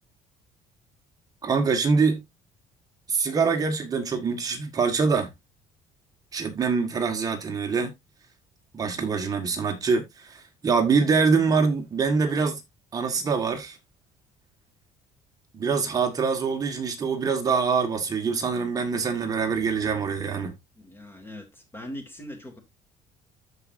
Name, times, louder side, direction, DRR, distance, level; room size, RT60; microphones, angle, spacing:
voice 1, 1.4-2.3 3.1-5.3 6.3-7.9 8.7-12.6 12.9-13.8 15.5-20.5, right 5 dB, 30° right, 1.7 m, -24 dB
voice 2, 20.7-22.6, left 1 dB, 15° left, 2.8 m, -40 dB
14.0 x 4.9 x 2.6 m
cardioid pair, 145°, 13 cm